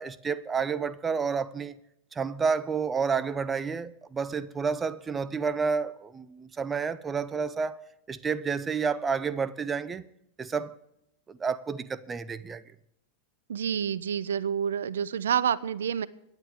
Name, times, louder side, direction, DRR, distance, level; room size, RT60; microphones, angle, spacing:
voice 1, 0.0-1.8 2.1-10.0 10.4-10.7 11.3-12.6, right 5 dB, 15° right, 0.7 m, -30 dB
voice 2, 13.5-16.1, right 8 dB, 65° right, 0.6 m, -28 dB
24.5 x 9.9 x 3.5 m
figure-of-eight pair, 90°, 0 cm